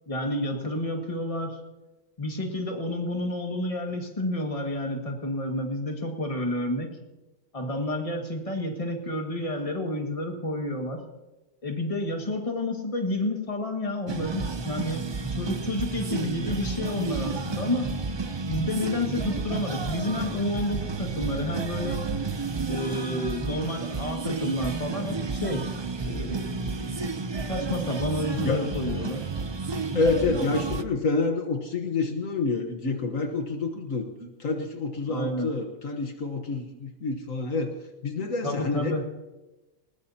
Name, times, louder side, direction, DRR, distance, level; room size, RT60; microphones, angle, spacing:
voice 1, 0.1-1.6 2.2-7.0 7.5-11.0 11.6-17.9 18.5-22.0 22.7-25.7 26.0-29.3 35.1-35.5 38.4-39.0, left 1 dB, 25° left, 2 dB, 2.0 m, -30 dB
sound 1, 14.1-30.8, right 4 dB, 45° right, 0.3 m, -31 dB
voice 2, 29.9-37.7 38.0-39.0, left 3 dB, 65° left, 4 dB, 1.6 m, -28 dB
20.5 x 19.5 x 2.9 m, 1.1 s
omnidirectional pair, 1.5 m